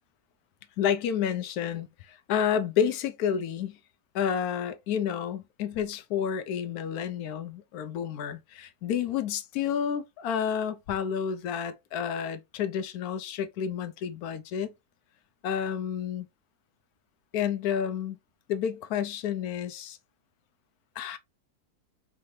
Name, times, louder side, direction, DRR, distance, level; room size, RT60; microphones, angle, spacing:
voice 1, 0.8-3.8 4.1-14.7 15.4-16.3 17.3-18.2 18.5-20.0 21.0-21.2, left 8 dB, 85° left, 1.1 m, -30 dB
4.8 x 2.7 x 3.1 m
omnidirectional pair, 1.5 m